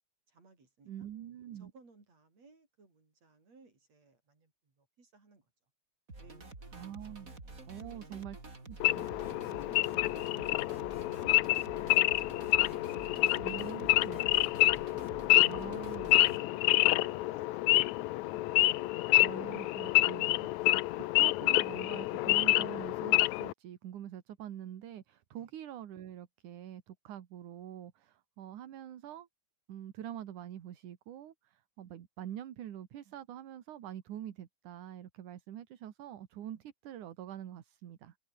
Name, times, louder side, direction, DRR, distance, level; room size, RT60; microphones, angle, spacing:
voice 1, 0.3-1.1 1.5-5.5 6.2-6.7 7.8-8.2 8.8-10.5 10.8-12.2 12.8-14.1 16.3-18.3 25.3-25.5, right 3 dB, 55° right, 7.7 m, -62 dB
voice 2, 0.8-1.7 6.7-7.3 7.6-8.4 8.7-9.0 13.4-14.2 15.4-16.1 19.2-29.3 29.7-38.2, right 11 dB, 80° right, 3.1 m, -45 dB
sound 1, 6.1-16.4, right 2 dB, 25° right, 5.0 m, -49 dB
Wild animals / Idling, 8.8-23.5, left 18 dB, 75° left, 1.9 m, -28 dB
omnidirectional pair, 3.5 m